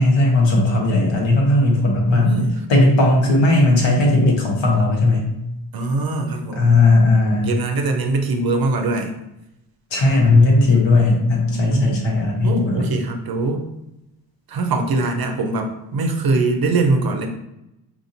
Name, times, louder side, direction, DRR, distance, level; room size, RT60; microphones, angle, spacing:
voice 1, 0.0-2.3 2.7-5.3 6.6-7.6 9.9-12.8, left 2 dB, 65° left, 0 dB, 1.3 m, -16 dB
voice 2, 2.1-2.6 3.9-4.0 5.7-6.8 7.4-9.1 11.5-12.1 12.4-13.6 14.5-17.3, right 3 dB, 50° right, 4 dB, 0.7 m, -22 dB
4.6 x 2.7 x 2.6 m, 0.89 s
cardioid pair, 65°, 48 cm